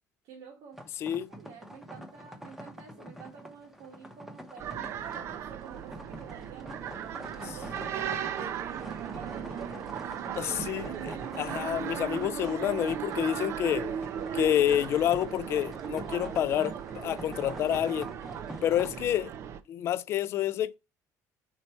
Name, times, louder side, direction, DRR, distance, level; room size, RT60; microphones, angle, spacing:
voice 1, 0.2-1.0 1.3-10.0, right 6 dB, 85° right, 1.6 m, -50 dB
sound 1, 0.7-19.0, equal, 5° right, 0.7 m, -45 dB
sound 2, 4.6-19.6, right 9 dB, 45° right, 0.5 m, -37 dB
voice 2, 10.4-14.0 14.3-18.1 18.6-19.3 19.7-20.7, left 11 dB, 40° left, 0.3 m, -28 dB
4.5 x 4.1 x 5.5 m
cardioid pair, 175°, 7 cm